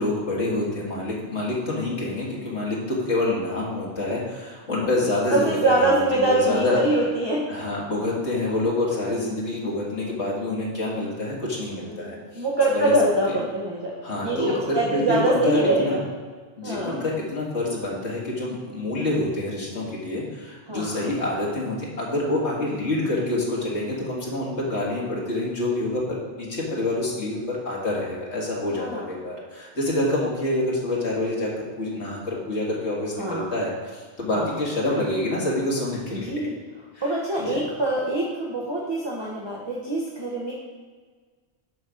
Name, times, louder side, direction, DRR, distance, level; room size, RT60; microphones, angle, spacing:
voice 1, 0.0-6.8 7.5-12.4 12.7-12.9 13.3-13.4 14.0-16.0 16.6-36.3 36.9-37.7, left 2 dB, 75° left, -4 dB, 2.1 m, -27 dB
voice 2, 5.3-7.4 11.9-14.0 14.2-16.0 16.6-17.0 20.7-21.2 28.7-29.1 33.2-33.5 34.3-34.5 36.1-36.5 37.0-40.5, right 2 dB, 25° right, -5 dB, 1.0 m, -24 dB
10.5 x 4.1 x 4.9 m, 1.5 s
omnidirectional pair, 1.1 m